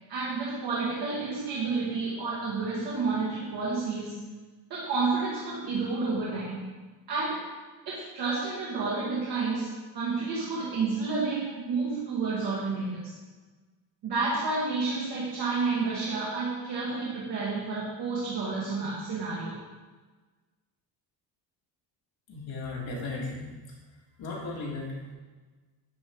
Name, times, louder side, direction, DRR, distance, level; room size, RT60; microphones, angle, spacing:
voice 1, 0.1-4.3 4.7-6.8 7.1-7.5 7.8-13.1 14.0-19.6, right 4 dB, 60° right, -6 dB, 1.6 m, -30 dB
voice 2, 22.3-23.5 24.2-25.1, left 3 dB, 55° left, -3 dB, 1.7 m, -36 dB
9.3 x 3.7 x 3.5 m, 1.3 s
cardioid pair, 135°, 44 cm